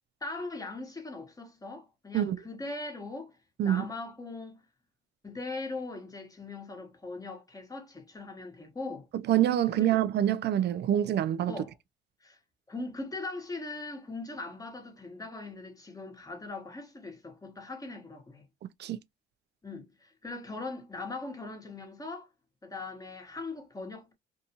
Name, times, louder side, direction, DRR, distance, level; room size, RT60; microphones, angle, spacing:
voice 1, 0.2-3.4 3.6-4.6 5.2-9.1 9.8-10.0 11.4-11.8 12.2-12.4 12.7-18.4 19.6-22.3 22.6-24.1, left 3 dB, 20° left, 1.0 m, -40 dB
voice 2, 9.3-11.5 18.8-19.0, right 11 dB, 60° right, 0.4 m, -26 dB
2.7 x 2.2 x 2.8 m
cardioid pair, 90°, 20 cm